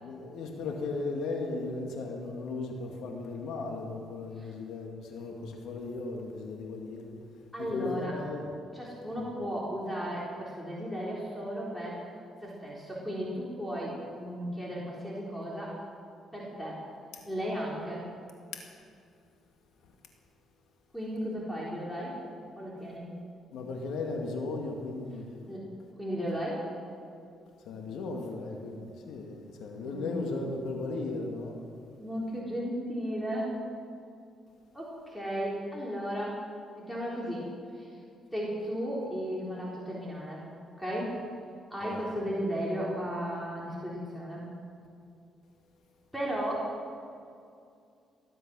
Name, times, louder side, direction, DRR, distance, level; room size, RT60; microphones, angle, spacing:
voice 1, 0.0-7.2 7.6-8.5 9.2-9.3 17.1-17.2 18.5-18.6 23.5-25.3 27.7-31.6 41.8-42.0, left 3 dB, 85° left, 2 dB, 2.1 m, -36 dB
voice 2, 7.5-8.2 8.7-12.0 12.4-15.8 16.3-16.8 17.3-18.1 20.9-22.2 22.6-23.2 25.5-25.7 26.0-26.7 29.8-30.1 32.0-33.5 34.7-36.4 36.8-37.5 37.7-38.0 38.3-40.4 40.8-41.2 41.7-44.5 46.1-46.8, equal, 5° left, -5 dB, 3.9 m, -35 dB
19.0 x 11.5 x 6.3 m, 2.4 s
cardioid pair, 90°, 0 cm